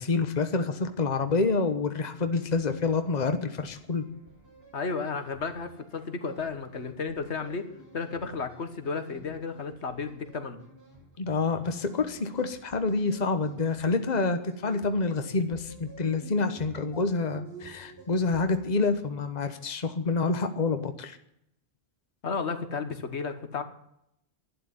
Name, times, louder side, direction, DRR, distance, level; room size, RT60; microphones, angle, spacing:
voice 1, 0.0-4.0 11.2-21.2, left 3 dB, 40° left, 8 dB, 1.3 m, -27 dB
sound 1, 1.9-19.1, right 1 dB, 65° right, 7.1 m, -51 dB
voice 2, 4.7-10.6 22.2-23.6, left 4 dB, 75° left, 9 dB, 1.7 m, -33 dB
11.5 x 10.0 x 9.8 m, 0.77 s
omnidirectional pair, 1.1 m